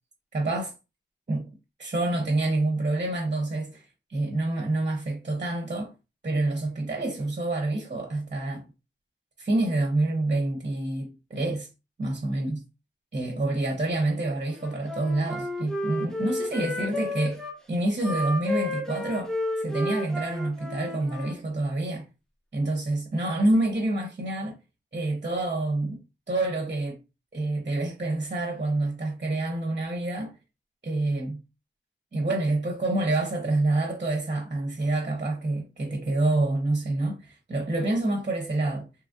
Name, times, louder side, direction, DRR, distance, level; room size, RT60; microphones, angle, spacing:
voice 1, 0.3-0.7 1.3-1.5 1.8-5.9 6.2-8.6 9.4-11.7 12.0-12.6 13.1-17.4 17.7-22.1 22.5-24.6 24.9-27.0 27.3-30.3 30.8-31.4 32.1-38.9, right 2 dB, 40° right, 0.7 m, -27 dB
Wind instrument woodwind instrument, 14.6-17.6 18.0-21.4, left 1 dB, 5° left, 0.6 m, -32 dB
2.9 x 2.4 x 2.4 m
wide cardioid pair, 80°, 20 cm